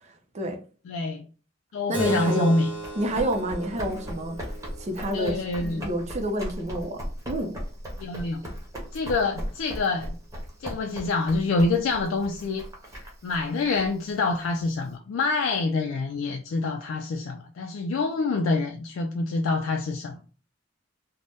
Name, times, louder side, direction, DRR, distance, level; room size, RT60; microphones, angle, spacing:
voice 1, 0.0-0.6 1.9-2.5 3.0-4.4 4.8-7.0 7.3-7.5, right 1 dB, 35° right, 0.5 m, -29 dB
voice 2, 0.9-1.2 1.7-2.7 5.1-5.8 8.0-8.4 8.9-10.1 10.6-12.7 13.2-20.2, left 3 dB, 90° left, 0.3 m, -26 dB
Keyboard (musical), 1.9-7.0, right 3 dB, 10° left, 1.0 m, -37 dB
Run, 2.6-14.9, equal, 15° right, 0.9 m, -38 dB
2.6 x 2.0 x 3.3 m
head